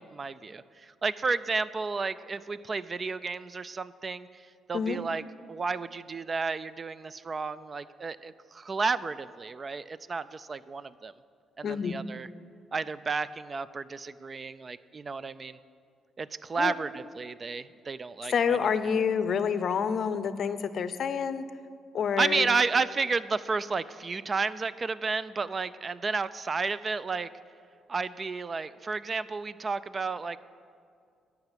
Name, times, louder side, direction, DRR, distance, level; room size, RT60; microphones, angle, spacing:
voice 1, 0.0-5.2 5.5-11.1 11.6-12.3 12.7-15.6 16.2-18.6 18.9-19.0 22.2-27.3 27.9-30.4, right 4 dB, 35° right, 16 dB, 0.3 m, -32 dB
voice 2, 11.6-11.9 16.6-16.7 18.3-21.4 21.9-22.5, left 6 dB, 60° left, 12 dB, 0.5 m, -28 dB
10.5 x 5.7 x 8.0 m, 2.3 s
cardioid pair, 90°, 0 cm